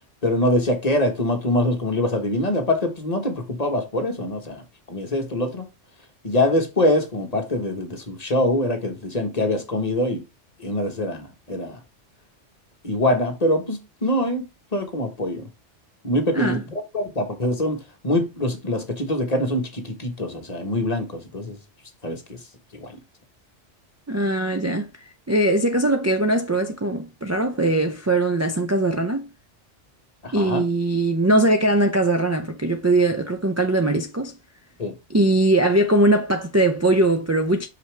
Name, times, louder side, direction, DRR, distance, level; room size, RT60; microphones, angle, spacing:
voice 1, 0.2-4.6 4.9-5.7 6.2-10.2 10.6-11.8 12.8-15.5 16.0-16.6 16.9-21.6 22.0-22.4 22.7-23.0 30.2-30.6 34.8-34.9, left 1 dB, 35° left, 1.4 m, -24 dB
voice 2, 24.1-24.9 25.3-29.3 30.3-34.3 35.1-37.7, right 1 dB, 25° right, 0.4 m, -20 dB
6.0 x 5.6 x 3.3 m
omnidirectional pair, 1.2 m